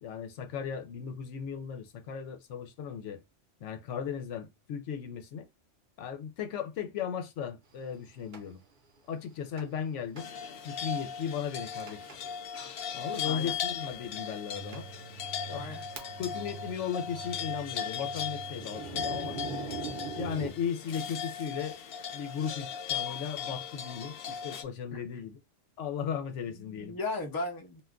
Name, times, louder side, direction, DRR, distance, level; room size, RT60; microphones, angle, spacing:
voice 1, 0.0-3.2 3.6-5.5 6.0-8.6 9.1-10.3 10.6-12.1 12.9-14.9 15.5-15.8 16.2-19.4 20.2-21.8 22.1-25.4 25.8-26.9, left 7 dB, 85° left, 0.9 m, -36 dB
Thunder, 8.3-8.4 9.6-9.9 10.2-10.3 10.9-11.0 11.9-12.2 12.5-12.7 13.6-13.7 14.3-14.4 14.7-14.9 15.4-16.4 16.7-20.5, right 4 dB, 50° right, 0.8 m, -42 dB
sound 1, 10.2-24.6, left 7 dB, 60° left, 0.7 m, -38 dB
voice 2, 13.2-13.6 15.5-15.9 24.9-25.2 26.5-27.8, left 2 dB, 25° left, 0.5 m, -37 dB
sound 2, 14.5-20.7, right 7 dB, 75° right, 0.9 m, -48 dB
2.5 x 2.2 x 3.5 m
omnidirectional pair, 1.2 m